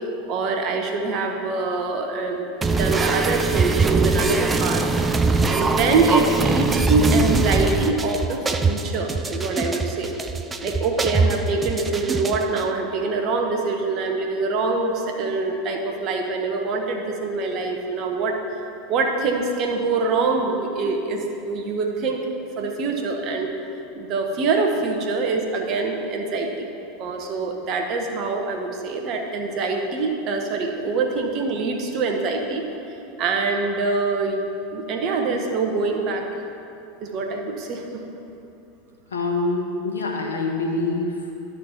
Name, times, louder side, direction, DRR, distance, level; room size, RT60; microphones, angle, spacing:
voice 1, 0.3-2.4 2.8-4.8 5.5-10.1 10.6-18.4 18.9-22.2 22.6-23.5 23.9-26.7 27.0-32.6 33.2-34.4 34.7-36.3 37.0-38.0, right 3 dB, 50° right, 3 dB, 1.1 m, -24 dB
sound 1, 2.6-12.6, right 3 dB, 20° right, 0.5 m, -22 dB
voice 2, 39.1-41.3, left 3 dB, 85° left, 0 dB, 1.3 m, -25 dB
12.0 x 4.2 x 5.8 m, 2.7 s
hypercardioid pair, 90°, 0 cm